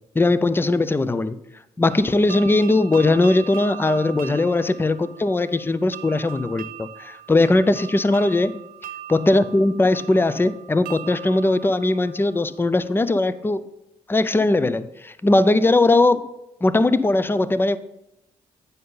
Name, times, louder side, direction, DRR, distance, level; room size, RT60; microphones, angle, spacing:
voice 1, 0.1-1.4 1.8-8.6 9.1-13.6 14.1-16.3 16.6-17.8, left 2 dB, 10° left, 14 dB, 0.5 m, -19 dB
sound 1, 1.9-12.7, right 11 dB, 55° right, 0.5 m, -40 dB
9.3 x 5.4 x 3.9 m, 0.86 s
hypercardioid pair, 40°, 17 cm